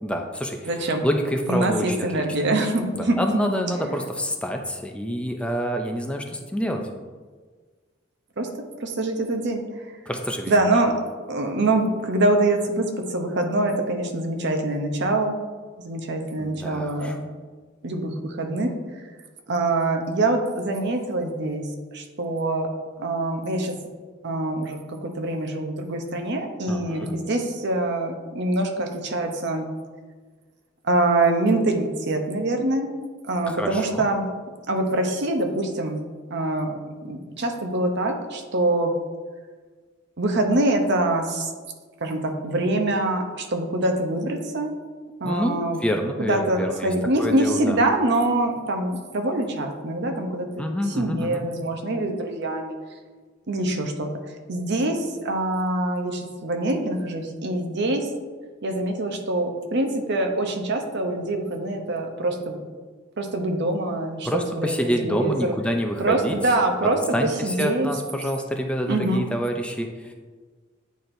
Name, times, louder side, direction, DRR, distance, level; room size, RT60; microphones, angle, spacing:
voice 1, 0.0-2.5 2.9-6.8 10.1-10.8 16.4-17.2 26.7-27.2 33.5-34.1 45.2-47.8 50.6-51.4 64.2-66.4 66.8-70.1, equal, 5° left, 3 dB, 0.4 m, -27 dB
voice 2, 0.7-1.1 1.5-3.2 8.4-8.5 8.8-9.6 10.5-10.9 11.3-15.3 15.8-17.2 17.8-18.7 19.5-21.6 21.9-22.7 23.0-23.8 24.2-29.7 30.8-32.9 33.3-34.3 34.7-36.0 36.3-38.9 40.2-41.5 42.0-44.7 45.2-45.8 46.2-50.7 51.0-52.8 53.5-54.1 54.5-58.0 58.6-62.6 63.2-65.5 66.0-67.0 67.4-67.9 68.9-69.2, right 2 dB, 60° right, 4 dB, 0.7 m, -24 dB
9.2 x 4.3 x 2.6 m, 1.4 s
head